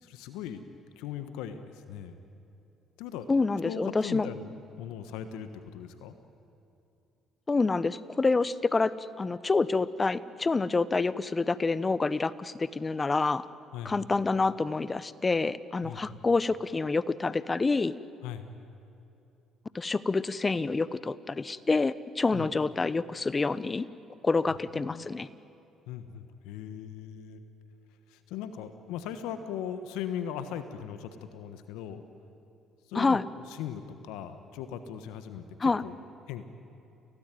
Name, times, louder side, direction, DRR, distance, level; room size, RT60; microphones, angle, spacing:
voice 1, 0.0-0.6 1.0-2.2 3.0-3.3 3.6-6.1 13.7-13.9 15.8-16.2 18.2-18.5 22.3-22.5 24.7-25.1 25.9-27.4 28.1-32.0 32.9-33.2 33.5-35.9 36.3-36.5, left 9 dB, 80° left, 9 dB, 1.4 m, -39 dB
voice 2, 3.3-4.3 7.5-13.5 13.8-17.9 19.7-23.9 24.2-25.3 32.9-33.2 35.6-35.8, left 3 dB, 30° left, 17 dB, 0.9 m, -27 dB
29.0 x 18.0 x 9.3 m, 2.8 s
hypercardioid pair, 60°, 0 cm